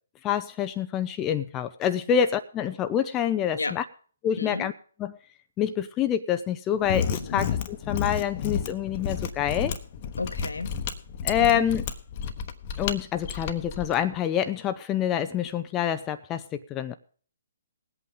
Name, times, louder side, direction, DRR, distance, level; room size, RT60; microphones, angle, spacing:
voice 1, 0.2-3.8 4.2-4.7 5.0-5.2 5.6-9.7 11.2-11.9 12.8-16.9, left 9 dB, 20° left, 9 dB, 0.6 m, -27 dB
voice 2, 4.4-4.7 7.2-7.4 10.2-10.7 11.4-11.6, left 3 dB, 80° left, 9 dB, 1.4 m, -32 dB
Mechanisms, 6.8-14.0, left 7 dB, 40° left, 1.1 m, -31 dB
19.5 x 8.4 x 3.8 m, 0.42 s
figure-of-eight pair, 130°, 0 cm